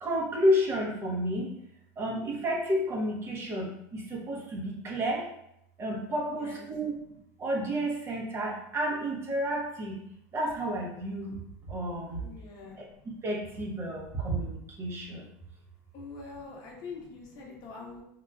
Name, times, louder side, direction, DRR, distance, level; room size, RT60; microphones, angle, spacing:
voice 1, 0.0-1.6 2.0-5.3 5.8-7.0 7.4-10.0 10.3-11.4 11.7-12.3 12.8-12.9 13.2-15.2, equal, 30° right, -1 dB, 0.7 m, -31 dB
voice 2, 6.3-6.6 12.2-12.8 15.9-18.0, left 4 dB, 50° left, -1 dB, 0.8 m, -44 dB
3.2 x 2.3 x 2.2 m, 0.76 s
supercardioid pair, 110°, 9 cm